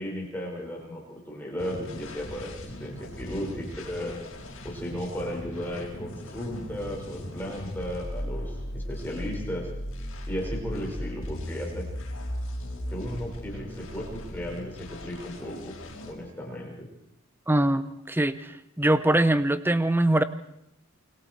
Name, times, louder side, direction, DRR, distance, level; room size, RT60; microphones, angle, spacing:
voice 1, 0.0-4.2 4.6-9.7 10.3-11.9 12.9-15.7 16.1-16.9, equal, 10° left, -2 dB, 5.8 m, -35 dB
sound 1, 1.6-16.1, equal, 70° left, 4.8 m, -37 dB
voice 2, 17.5-20.2, right 1 dB, 10° right, 13 dB, 0.8 m, -23 dB
29.0 x 22.5 x 4.7 m, 0.75 s
head